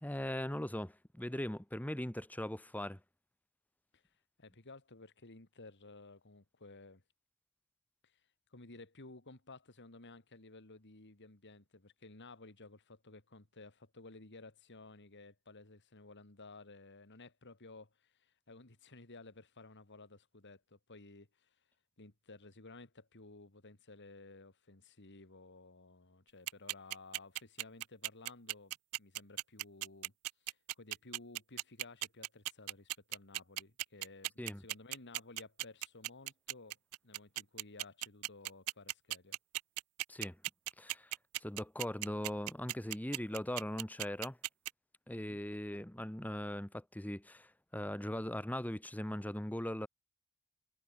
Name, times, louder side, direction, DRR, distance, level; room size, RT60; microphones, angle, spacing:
voice 1, 0.0-3.0 34.4-34.6 40.1-40.4 40.8-41.1 41.4-44.4 45.1-49.9, left 1 dB, 5° left, 1.1 m, -40 dB
voice 2, 4.4-7.0 8.0-8.2 8.5-21.6 22.0-30.1 30.5-36.8 37.0-39.4 45.1-45.4, left 3 dB, 55° left, 2.6 m, -55 dB
sound 1, 26.5-44.7, right 17 dB, 85° right, 0.5 m, -37 dB
head